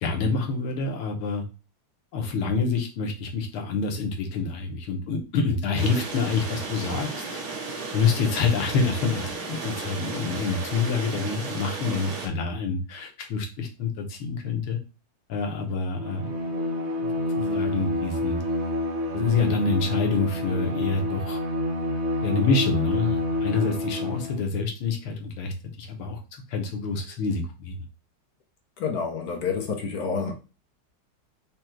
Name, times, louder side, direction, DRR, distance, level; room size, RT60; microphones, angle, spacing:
voice 1, 0.0-1.4 2.1-7.4 7.9-14.8 15.3-16.3 17.4-18.4 19.1-21.4 22.2-26.2 26.5-27.8, left 4 dB, 85° left, 1.8 m, -27 dB
sound 1, 5.8-12.3, right 3 dB, 75° right, 2.1 m, -34 dB
Bowed string instrument, 16.0-24.5, left 1 dB, 55° right, 0.7 m, -28 dB
voice 2, 28.8-30.3, left 5 dB, 55° left, 1.2 m, -28 dB
5.1 x 2.3 x 4.4 m
omnidirectional pair, 2.3 m